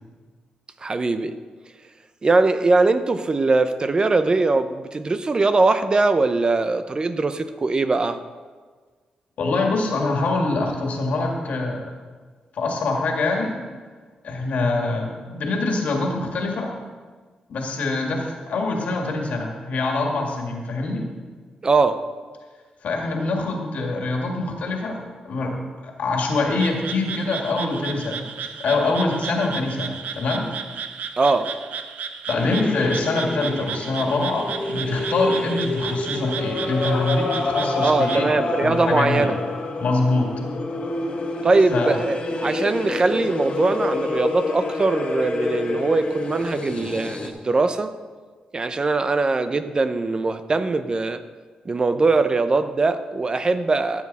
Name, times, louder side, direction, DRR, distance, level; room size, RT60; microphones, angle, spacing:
voice 1, 0.8-1.3 2.2-8.2 21.6-22.0 31.2-31.5 37.8-39.4 41.4-47.9 48.5-51.2 51.7-54.0, right 3 dB, 35° right, 11 dB, 0.6 m, -21 dB
voice 2, 9.4-11.8 12.5-13.6 14.2-16.7 17.5-21.1 22.8-30.5 32.3-39.3 39.8-40.3 41.7-42.0, left 3 dB, 70° left, 1 dB, 2.1 m, -24 dB
Frog, 26.5-38.2, right 7 dB, 80° right, 0.7 m, -34 dB
sound 1, 32.3-47.3, left 2 dB, 50° left, 1.6 m, -28 dB
14.0 x 7.4 x 4.1 m, 1.5 s
cardioid pair, 80°, 3 cm